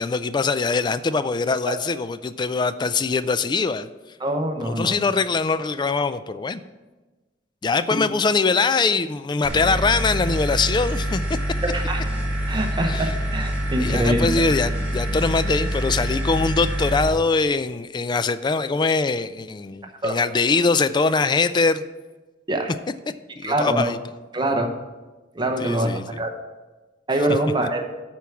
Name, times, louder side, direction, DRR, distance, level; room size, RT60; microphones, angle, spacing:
voice 1, 0.0-3.9 4.6-6.6 7.6-11.4 12.8-13.1 13.8-21.8 23.4-24.0 25.6-26.2, left 4 dB, 25° left, 13 dB, 0.3 m, -22 dB
voice 2, 4.2-5.0 7.9-8.0 11.7-12.0 12.5-14.3 20.0-20.2 22.5-22.7 23.4-23.9 24.3-24.7 25.3-25.9 26.2-26.3 27.1-27.8, right 1 dB, 25° right, 4 dB, 0.9 m, -24 dB
sound 1, 9.4-17.0, equal, 10° right, 2.2 m, -26 dB
8.4 x 4.6 x 7.1 m, 1.2 s
head